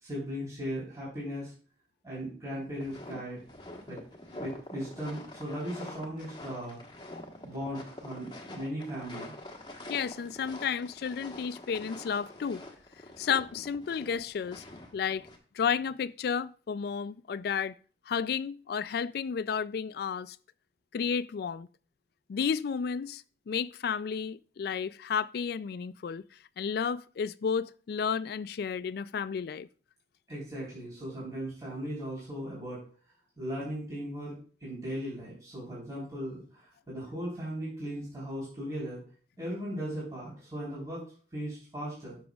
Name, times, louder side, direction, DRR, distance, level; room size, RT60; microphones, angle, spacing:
voice 1, 0.0-1.5 2.0-3.4 3.9-6.8 7.4-9.3 30.3-32.8 33.4-34.4 34.6-39.0 39.4-41.1 41.3-42.2, equal, 20° right, 3.9 m, -37 dB
sound 1, 2.8-15.4, left 1 dB, 25° left, 1.2 m, -46 dB
voice 2, 9.9-12.6 13.2-14.6 14.9-15.3 15.5-17.8 18.1-20.4 20.9-21.7 22.3-26.2 26.6-29.7, left 6 dB, 60° left, 0.3 m, -32 dB
13.0 x 6.3 x 2.3 m
head